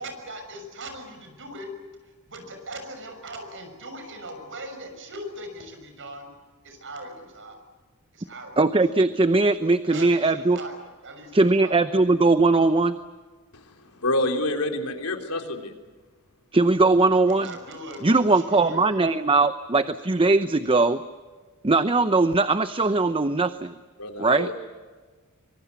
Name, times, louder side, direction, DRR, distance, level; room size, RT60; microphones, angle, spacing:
voice 1, 0.0-1.7 2.0-6.3 6.6-7.6 8.1-8.6 9.8-12.2 17.2-19.3 19.7-20.3, right 1 dB, 60° right, 6 dB, 6.4 m, -40 dB
voice 2, 8.6-10.6 11.3-13.0 16.5-17.5 18.0-21.0 21.6-23.7 24.2-24.5, right 3 dB, 25° right, 11 dB, 0.7 m, -20 dB
voice 3, 14.0-15.7 24.0-24.5, left 2 dB, 90° left, 4 dB, 3.6 m, -27 dB
25.0 x 24.0 x 8.3 m, 1.4 s
head